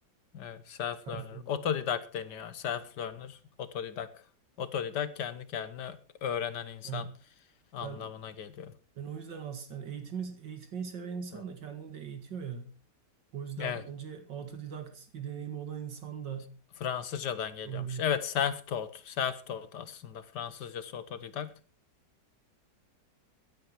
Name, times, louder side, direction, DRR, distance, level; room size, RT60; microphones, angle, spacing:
voice 1, 0.3-4.2 4.6-7.1 7.7-8.7 11.3-11.4 13.6-13.8 16.8-21.5, left 8 dB, 70° left, 13 dB, 1.8 m, -35 dB
voice 2, 1.1-1.5 6.8-7.1 7.8-8.1 9.0-12.7 13.3-16.5 17.6-18.0, right 7 dB, 80° right, 7 dB, 2.7 m, -40 dB
16.0 x 11.5 x 4.6 m, 0.36 s
omnidirectional pair, 1.9 m